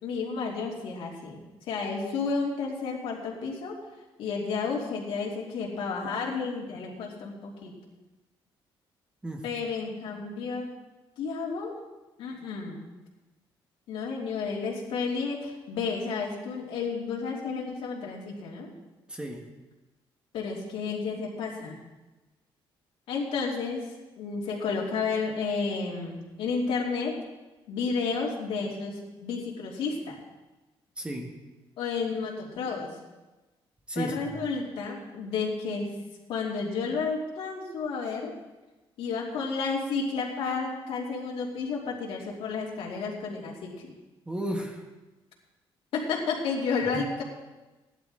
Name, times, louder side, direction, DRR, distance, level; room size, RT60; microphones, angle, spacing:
voice 1, 0.0-1.4 1.7-3.7 4.2-7.7 9.4-10.7 11.2-11.8 12.2-12.8 13.9-18.7 20.3-21.8 23.1-23.9 24.2-27.2 27.7-30.2 31.8-32.9 33.9-35.9 36.3-38.3 39.0-43.9 45.9-47.2, left 4 dB, 80° left, -2 dB, 2.8 m, -31 dB
voice 2, 19.1-19.5 31.0-31.3 33.9-34.3 44.3-44.8 46.9-47.0, right 1 dB, 10° right, 2 dB, 1.3 m, -33 dB
16.5 x 11.0 x 3.8 m, 1.1 s
cardioid pair, 155°, 9 cm